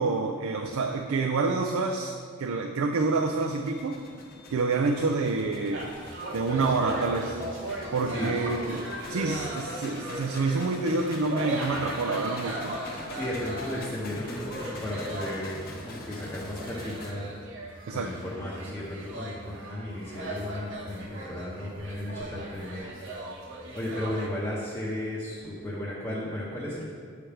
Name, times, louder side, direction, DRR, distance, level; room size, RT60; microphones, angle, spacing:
voice 1, 0.0-2.1 2.4-4.0 4.5-5.9 6.3-7.4 7.9-12.8 17.9-18.1, right 3 dB, 80° right, 3 dB, 0.4 m, -27 dB
sound 1, 3.0-17.1, left 2 dB, 45° left, 0.7 m, -44 dB
sound 2, 5.7-10.8 11.1-24.3, right 1 dB, 60° right, 1.0 m, -38 dB
voice 2, 8.1-8.4 13.1-17.3 17.9-23.3 23.7-26.8, left 1 dB, 10° left, -9 dB, 0.8 m, -35 dB
7.6 x 3.4 x 5.7 m, 2.1 s
head